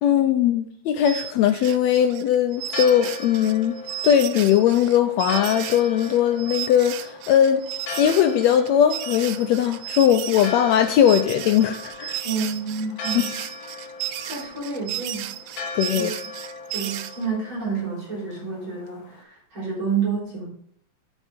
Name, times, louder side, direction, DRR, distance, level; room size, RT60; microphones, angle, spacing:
voice 1, 0.0-3.7 4.0-7.6 7.9-12.2 15.7-16.1, left 9 dB, 85° left, 8 dB, 1.5 m, -19 dB
sound 1, 1.0-17.3, right 13 dB, 80° right, 1.9 m, -34 dB
Church bell, 2.6-19.2, left 4 dB, 55° left, 1.4 m, -39 dB
voice 2, 12.2-13.4 14.3-15.2 15.9-16.1 16.7-20.5, right 5 dB, 40° right, -5 dB, 4.3 m, -29 dB
8.4 x 6.3 x 5.2 m, 0.65 s
omnidirectional pair, 3.7 m